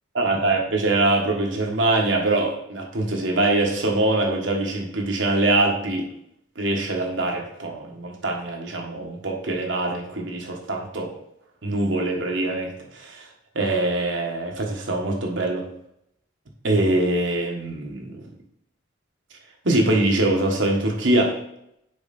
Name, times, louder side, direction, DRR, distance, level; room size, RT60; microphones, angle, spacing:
voice 1, 0.1-6.1 6.6-11.1 11.6-13.2 13.5-15.6 16.6-18.2 19.6-21.3, right 2 dB, 75° right, 0 dB, 1.5 m, -23 dB
7.0 x 5.0 x 4.3 m, 0.78 s
head